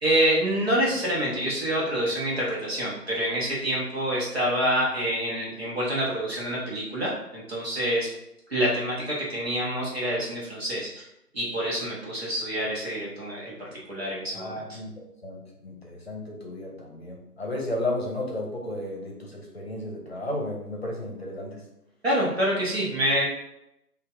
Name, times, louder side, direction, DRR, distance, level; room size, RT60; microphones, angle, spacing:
voice 1, 0.0-8.1 8.5-11.0 11.3-13.5 13.9-14.7 22.0-23.2, right 1 dB, 40° right, -6 dB, 1.5 m, -27 dB
voice 2, 14.3-21.6, left 1 dB, 40° left, -1 dB, 1.0 m, -33 dB
6.3 x 2.8 x 2.7 m, 0.83 s
figure-of-eight pair, 170°, 47 cm